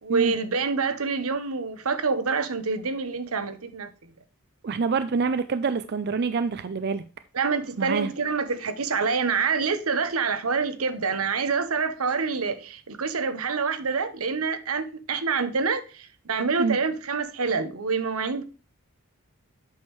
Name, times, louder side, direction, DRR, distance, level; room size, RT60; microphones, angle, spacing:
voice 1, 0.0-4.1 7.3-18.4, right 5 dB, 85° right, 1.0 m, -27 dB
voice 2, 4.6-7.0 7.8-8.1 16.6-16.8, right 5 dB, 50° right, 0.4 m, -26 dB
8.4 x 6.4 x 3.1 m
head